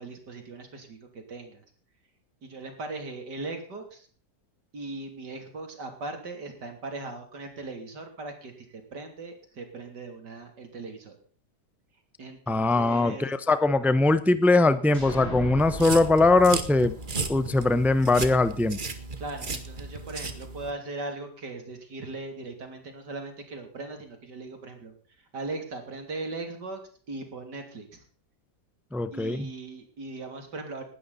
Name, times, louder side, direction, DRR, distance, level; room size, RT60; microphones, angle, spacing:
voice 1, 0.0-1.6 2.4-4.1 4.7-11.2 12.2-13.3 19.2-26.8 27.1-28.0 29.1-30.8, right 3 dB, 80° right, 5 dB, 3.7 m, -39 dB
voice 2, 12.5-16.9 17.3-18.8 28.9-29.5, left 2 dB, ahead, 13 dB, 0.4 m, -21 dB
sound 1, 14.9-18.6, left 1 dB, 20° left, 6.5 m, -40 dB
sound 2, 15.6-20.7, right 3 dB, 30° right, 1.4 m, -35 dB
19.0 x 12.5 x 4.2 m, 0.43 s
omnidirectional pair, 1.8 m